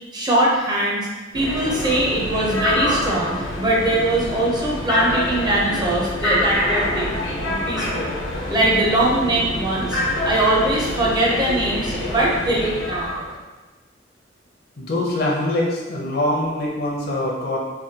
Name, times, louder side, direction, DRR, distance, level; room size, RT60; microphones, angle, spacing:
voice 1, 0.1-1.1 1.3-7.1 7.5-8.1 8.5-13.2, right 1 dB, 20° right, -4 dB, 0.5 m, -21 dB
sound 1, 1.3-13.3, left 1 dB, 90° left, 1.0 m, -26 dB
voice 2, 14.8-17.6, left 1 dB, 55° left, -3 dB, 0.6 m, -23 dB
3.3 x 2.2 x 2.7 m, 1.2 s
head